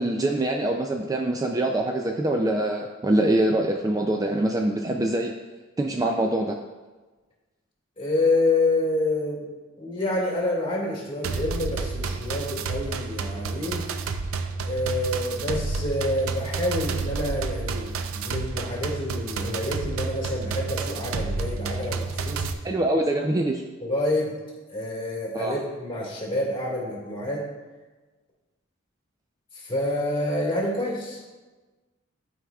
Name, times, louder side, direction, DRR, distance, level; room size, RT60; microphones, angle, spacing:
voice 1, 0.0-5.3 5.8-6.6 22.6-23.6 25.3-25.6, right 1 dB, 15° right, 2 dB, 0.3 m, -24 dB
voice 2, 8.0-9.5 9.8-13.8 14.6-22.5 23.8-24.3 24.7-27.5 29.5-31.2, left 2 dB, 25° left, -4 dB, 1.9 m, -27 dB
sound 1, 11.2-22.5, right 4 dB, 85° right, 0.4 m, -30 dB
11.0 x 4.8 x 2.3 m, 1.3 s
head